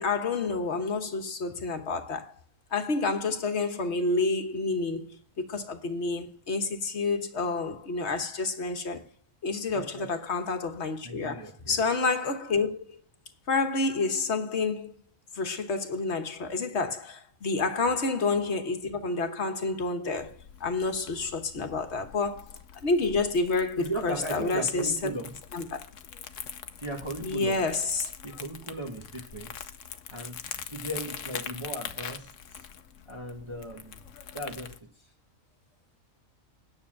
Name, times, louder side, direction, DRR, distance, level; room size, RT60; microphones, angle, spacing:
voice 1, 0.0-2.3 2.7-9.0 9.4-12.9 13.5-14.9 15.3-24.9 25.5-25.8 27.2-28.1, left 3 dB, 55° left, 1.5 m, -29 dB
voice 2, 9.7-10.1 11.0-11.8 17.5-17.7 23.8-25.4 26.8-27.6 28.2-29.7 30.1-32.7 33.1-34.0 34.3-35.1, right 1 dB, 20° right, 1.4 m, -37 dB
Crumpling crinkling, 20.2-34.8, left 8 dB, 75° left, 1.1 m, -43 dB
9.6 x 6.4 x 7.6 m
omnidirectional pair, 1.4 m